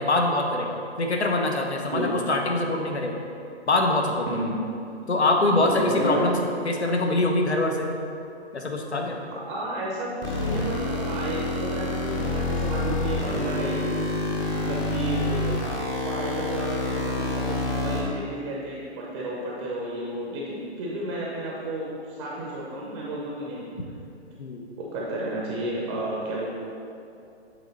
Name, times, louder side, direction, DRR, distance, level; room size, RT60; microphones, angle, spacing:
voice 1, 0.0-3.2 3.7-4.5 5.1-6.4 6.6-7.9 8.5-9.2 24.4-24.6, left 2 dB, 80° left, 2 dB, 0.9 m, -24 dB
voice 2, 1.9-2.2 4.3-4.6 5.6-6.4 9.2-14.1 14.5-15.6 16.1-23.7 24.8-26.5, right 1 dB, 25° right, -4 dB, 0.6 m, -32 dB
sound 1, 10.2-18.0, left 2 dB, 20° left, 0.6 m, -28 dB
7.9 x 3.2 x 4.0 m, 2.6 s
figure-of-eight pair, 130°, 33 cm